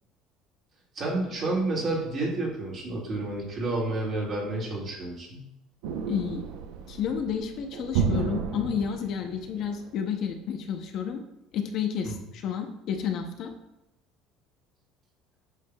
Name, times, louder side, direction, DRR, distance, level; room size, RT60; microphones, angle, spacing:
voice 1, 0.9-5.5 12.0-12.2, right 2 dB, 35° right, -3 dB, 2.1 m, -30 dB
sound 1, 5.8-10.0, right 6 dB, 90° right, 0.7 m, -32 dB
voice 2, 6.1-6.4 6.9-11.2 11.5-12.1 12.4-13.5, left 7 dB, 50° left, 4 dB, 0.7 m, -30 dB
8.2 x 5.6 x 2.3 m, 0.85 s
cardioid pair, 145°, 0 cm